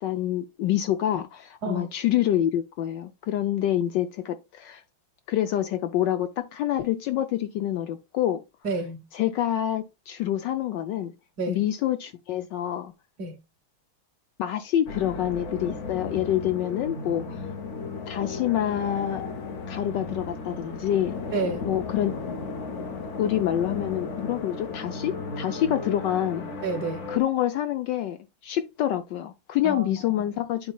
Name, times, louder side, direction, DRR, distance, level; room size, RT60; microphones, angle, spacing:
voice 1, 0.0-4.8 5.3-8.4 9.1-11.1 11.5-12.9 14.4-17.4 18.1-19.2 19.7-21.2 21.6-22.1 23.2-26.5 27.1-28.2 28.4-30.7, left 11 dB, 75° left, 1.1 m, -27 dB
voice 2, 8.6-9.0 11.4-11.6 13.2-13.4 21.3-21.6 26.6-27.0 29.6-30.0, right 3 dB, 55° right, 1.3 m, -29 dB
sound 1, 14.9-27.2, left 4 dB, 55° left, 0.8 m, -35 dB
11.0 x 4.1 x 2.2 m
omnidirectional pair, 2.3 m